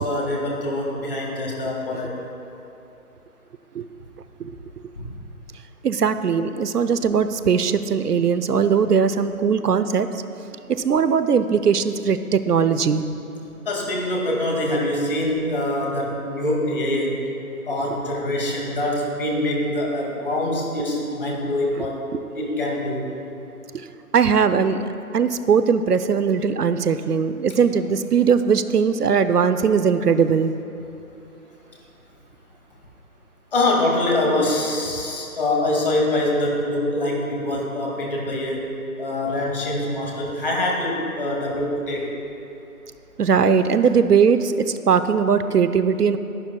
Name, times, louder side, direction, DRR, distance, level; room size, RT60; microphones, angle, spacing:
voice 1, 0.0-2.2 5.0-5.1 13.7-17.2 17.7-22.0 22.4-23.1 33.5-38.7 39.0-42.1, left 1 dB, 35° left, -1 dB, 2.2 m, -24 dB
voice 2, 5.8-10.2 10.7-13.1 21.8-21.9 22.1-22.2 23.7-23.9 24.1-24.8 25.1-30.5 43.2-46.2, right 6 dB, 90° right, 11 dB, 0.8 m, -19 dB
22.5 x 11.5 x 2.3 m, 2.8 s
figure-of-eight pair, 165°, 45 cm